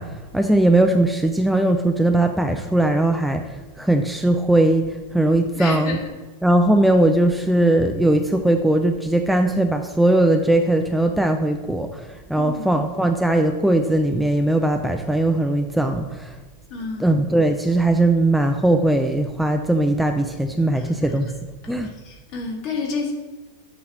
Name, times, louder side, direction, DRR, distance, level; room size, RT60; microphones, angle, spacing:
voice 1, 0.0-6.0 6.4-16.4 17.0-21.3 21.7-21.9, right 1 dB, ahead, 5 dB, 0.4 m, -19 dB
voice 2, 5.5-6.0 12.3-12.7 16.7-17.2 20.7-21.1 21.8-23.1, left 4 dB, 40° left, 1 dB, 1.4 m, -30 dB
7.6 x 3.0 x 5.6 m, 1.3 s
figure-of-eight pair, 90°, 0 cm